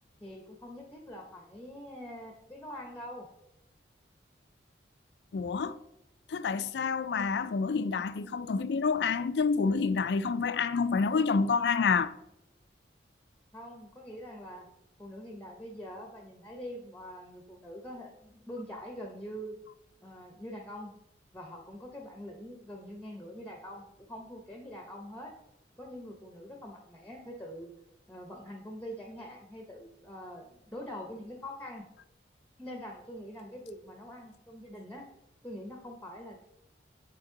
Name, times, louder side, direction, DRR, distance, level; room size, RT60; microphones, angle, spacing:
voice 1, 0.2-3.3 13.5-14.6 15.0-19.6 20.0-20.9 21.3-25.3 25.8-27.7 28.1-31.8 32.6-35.1 35.4-36.4, equal, 10° left, 0.8 m, -44 dB
voice 2, 5.3-5.8 6.3-12.1, left 5 dB, 65° left, 0.4 m, -28 dB
8.9 x 4.3 x 3.8 m
head